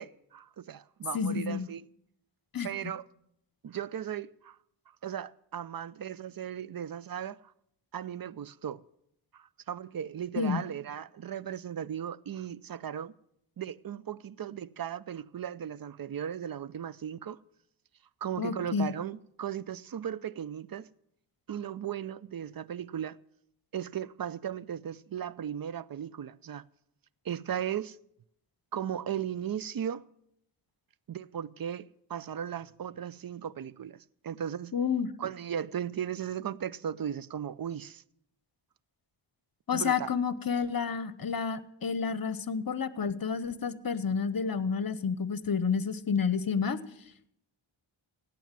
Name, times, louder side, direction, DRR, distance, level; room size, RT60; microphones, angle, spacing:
voice 1, 0.0-1.8 2.6-3.0 3.6-4.6 5.0-7.4 7.9-8.8 9.3-13.1 13.6-17.4 18.2-20.9 21.5-23.2 23.7-26.6 27.2-28.0 28.7-30.0 31.1-34.7 35.2-38.0 39.7-40.1, right 9 dB, 45° right, 0.6 m, -36 dB
voice 2, 1.1-1.7 2.5-2.7 10.4-10.6 18.4-18.9 34.7-35.1 39.7-46.8, left 6 dB, 45° left, 1.0 m, -30 dB
16.5 x 9.1 x 7.5 m
cardioid pair, 60°, 49 cm